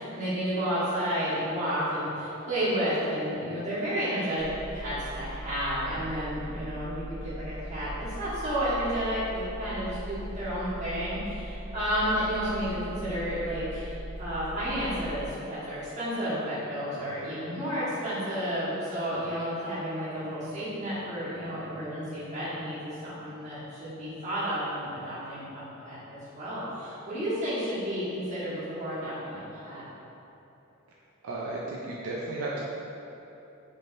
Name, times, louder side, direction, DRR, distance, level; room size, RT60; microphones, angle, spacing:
voice 1, 0.0-4.5 4.7-29.8, equal, 35° right, -12 dB, 1.3 m, -31 dB
sound 1, 4.4-15.3, right 1 dB, 80° left, 1.2 m, -40 dB
voice 2, 31.2-32.7, right 2 dB, 70° right, -5 dB, 0.4 m, -34 dB
4.0 x 3.2 x 2.5 m, 3.0 s
head